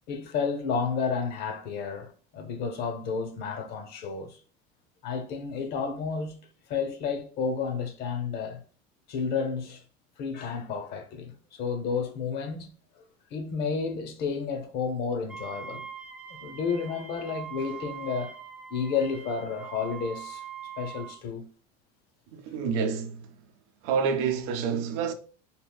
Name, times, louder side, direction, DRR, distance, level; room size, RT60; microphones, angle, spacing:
voice 1, 0.1-4.4 5.0-6.4 6.7-8.6 9.1-9.8 10.2-12.7 13.3-15.9 16.3-18.3 18.7-20.4 20.8-21.5, left 5 dB, 55° left, 0.6 m, -31 dB
Wind instrument woodwind instrument, 15.3-21.2, right 8 dB, 5° right, 0.4 m, -42 dB
voice 2, 22.3-23.3 23.8-25.1, right 6 dB, 70° right, 0.6 m, -28 dB
3.5 x 2.4 x 2.3 m
supercardioid pair, 125°, 20 cm